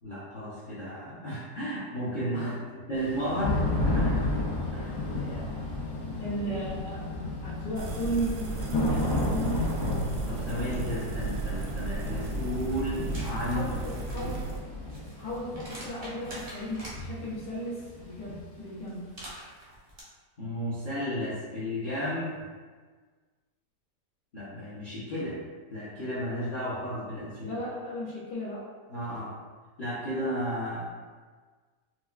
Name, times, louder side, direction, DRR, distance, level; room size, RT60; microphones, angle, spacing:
voice 1, 0.0-4.2 4.7-5.0 10.3-13.6 14.2-14.3 20.4-22.4 24.3-25.4 25.7-27.6 28.9-29.3 29.8-30.8, equal, 50° left, -10 dB, 0.6 m, -33 dB
Thunder / Rain, 3.0-18.7, left 2 dB, 75° left, 1.6 m, -33 dB
voice 2, 6.2-7.0 7.4-9.6 13.4-14.4 15.2-19.1 27.4-28.6, equal, 90° left, -12 dB, 1.6 m, -35 dB
sound 1, 7.8-14.6, right 2 dB, 85° right, 0.6 m, -34 dB
sound 2, 13.1-13.3 13.8-17.0 18.9-20.0, right 1 dB, 40° right, 0.5 m, -45 dB
4.5 x 2.2 x 2.4 m, 1.5 s
omnidirectional pair, 1.8 m